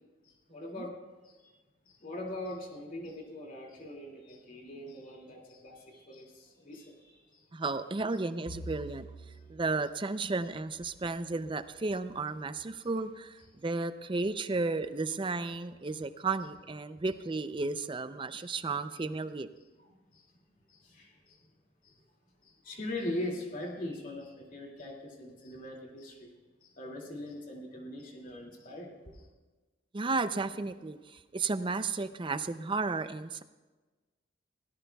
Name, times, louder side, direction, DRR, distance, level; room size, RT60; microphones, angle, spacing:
voice 1, 0.2-1.0 1.2-1.5 1.9-7.4 18.4-18.5 19.8-20.2 20.7-21.4 21.8-22.0 22.4-26.3 26.6-29.3, left 1 dB, 45° left, 0 dB, 2.3 m, -42 dB
voice 2, 7.5-9.1 9.5-19.5 29.9-33.4, right 3 dB, 25° right, 11 dB, 0.5 m, -33 dB
Bowed string instrument, 8.5-12.8, right 2 dB, 65° left, 2.7 m, -49 dB
21.5 x 17.5 x 2.3 m, 1.2 s
head